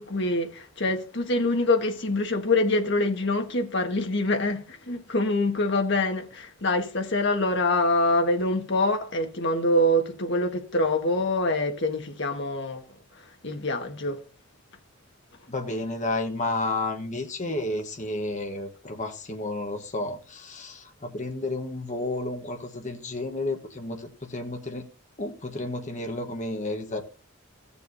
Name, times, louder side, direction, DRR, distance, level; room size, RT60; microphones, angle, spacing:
voice 1, 0.0-12.9 13.2-14.2, left 1 dB, 55° left, 1.5 m, -25 dB
voice 2, 15.5-24.8 25.2-27.0, left 2 dB, 35° left, 1.2 m, -31 dB
17.0 x 7.0 x 2.6 m
head